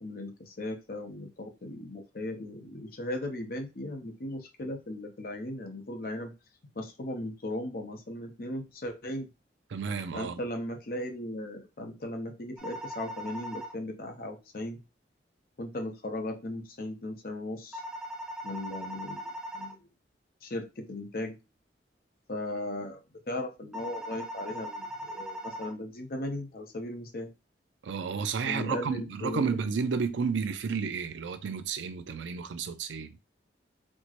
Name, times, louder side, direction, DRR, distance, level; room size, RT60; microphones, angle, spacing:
voice 1, 0.0-6.3 6.8-9.3 10.1-14.8 15.6-17.8 18.4-19.8 20.4-21.4 22.3-27.3 28.5-29.5, left 1 dB, 50° left, 0.7 m, -37 dB
voice 2, 9.7-10.4 27.8-33.1, right 5 dB, 85° right, 0.4 m, -31 dB
sound 1, 12.6-13.7 17.7-19.7 23.7-25.7, equal, 5° right, 0.6 m, -39 dB
4.2 x 2.1 x 2.9 m
head